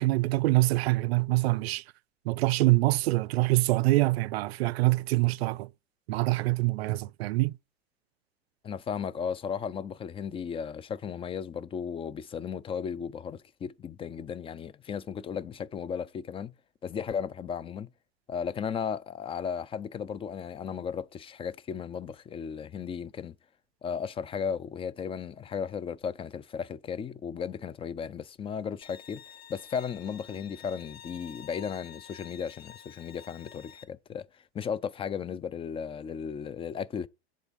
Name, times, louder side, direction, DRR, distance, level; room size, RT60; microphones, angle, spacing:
voice 1, 0.0-1.8 2.3-5.7 6.1-7.5, right 20 dB, 75° right, 0.5 m, -25 dB
voice 2, 8.6-16.5 16.8-17.9 18.3-23.3 23.8-29.2 29.5-34.3 34.5-37.1, left 7 dB, 20° left, 0.4 m, -35 dB
Bowed string instrument, 28.8-33.8, left 9 dB, 75° left, 0.9 m, -50 dB
8.1 x 3.7 x 5.2 m
hypercardioid pair, 100°, 31 cm